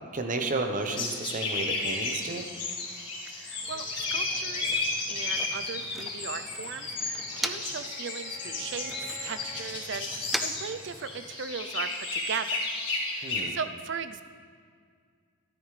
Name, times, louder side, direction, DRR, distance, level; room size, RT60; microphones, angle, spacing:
voice 1, 0.0-2.4 13.2-13.5, right 3 dB, 40° right, 5 dB, 0.9 m, -32 dB
sound 1, 0.8-13.4, left 3 dB, 40° left, 3.1 m, -33 dB
voice 2, 3.2-4.8 5.1-12.6 13.1-14.2, right 6 dB, 55° right, 11 dB, 0.5 m, -38 dB
Motor vehicle (road), 3.5-7.9 8.2-11.5, equal, ahead, 0.3 m, -41 dB
Bowed string instrument, 6.6-9.8, left 3 dB, 65° left, 1.7 m, -50 dB
14.0 x 12.0 x 3.3 m, 2.1 s
head